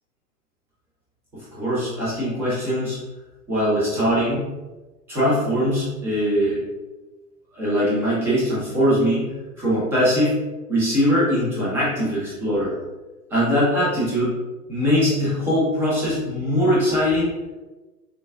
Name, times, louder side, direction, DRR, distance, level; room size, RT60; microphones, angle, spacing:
voice 1, 1.3-3.0 3.5-4.5 5.1-6.6 7.5-9.3 9.6-10.4 10.7-12.8 13.3-14.3 14.7-17.3, equal, 5° right, -8 dB, 0.5 m, -21 dB
5.8 x 2.3 x 2.3 m, 1.2 s
figure-of-eight pair, 110°, 48 cm